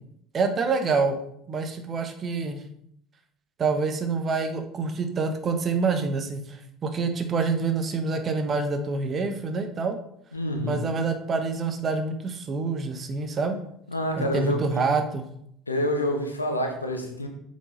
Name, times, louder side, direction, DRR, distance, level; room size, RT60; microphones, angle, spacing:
voice 1, 0.3-1.2 1.5-2.7 3.6-10.0 10.6-13.6 14.2-15.2, right 4 dB, 35° right, 7 dB, 1.2 m, -27 dB
voice 2, 10.3-10.8 13.9-14.8 15.7-17.3, left 1 dB, 85° left, 3 dB, 1.0 m, -27 dB
8.1 x 5.3 x 4.0 m, 0.71 s
figure-of-eight pair, 60°, 0 cm